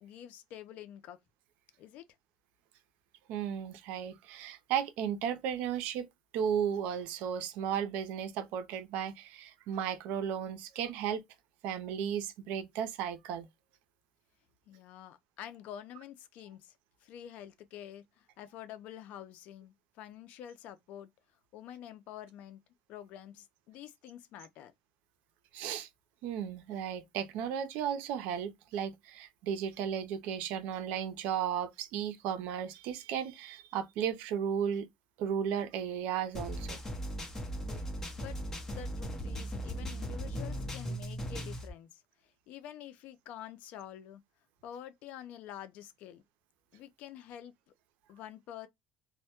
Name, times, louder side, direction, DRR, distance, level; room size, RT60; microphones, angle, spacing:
voice 1, 0.0-1.2 1.8-2.0 14.7-21.1 21.5-22.6 22.9-24.7 38.2-38.4 38.7-44.2 44.6-46.2 46.7-47.5 48.1-48.7, left 10 dB, 70° left, 0.4 m, -48 dB
voice 2, 3.3-6.1 6.3-11.2 11.6-13.5 25.5-25.9 26.2-34.9 35.2-36.8, right 8 dB, 80° right, 0.5 m, -34 dB
sound 1, 36.3-41.7, equal, 20° left, 0.8 m, -38 dB
2.1 x 2.1 x 2.8 m
cardioid pair, 125°, 3 cm